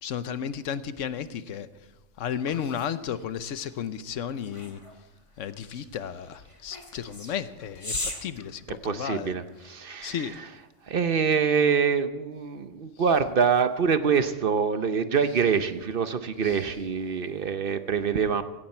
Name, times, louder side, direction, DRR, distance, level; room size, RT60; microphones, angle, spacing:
voice 1, 0.0-1.7 2.2-4.8 5.4-9.3 10.0-10.4 16.4-16.6, left 8 dB, 90° left, 1.1 m, -33 dB
sound 1, 1.9-9.3, left 1 dB, 25° left, 2.1 m, -40 dB
voice 2, 8.8-10.5 10.9-18.4, right 6 dB, 50° right, 0.9 m, -25 dB
17.0 x 15.5 x 4.4 m
omnidirectional pair, 1.3 m